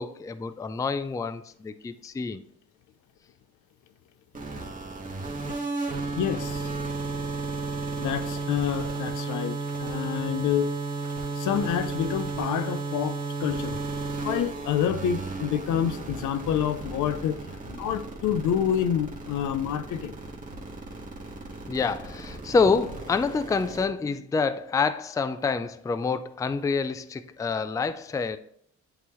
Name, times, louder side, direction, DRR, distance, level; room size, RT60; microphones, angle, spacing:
voice 1, 0.0-2.4 21.7-28.4, left 4 dB, 10° left, 11 dB, 0.3 m, -27 dB
sound 1, 4.3-23.8, right 3 dB, 25° right, 1.6 m, -33 dB
voice 2, 6.2-6.7 8.0-10.7 11.4-13.8 14.2-17.4 17.7-20.1, left 9 dB, 75° left, 10 dB, 0.6 m, -28 dB
8.4 x 3.9 x 3.0 m, 0.66 s
cardioid pair, 90°, 30 cm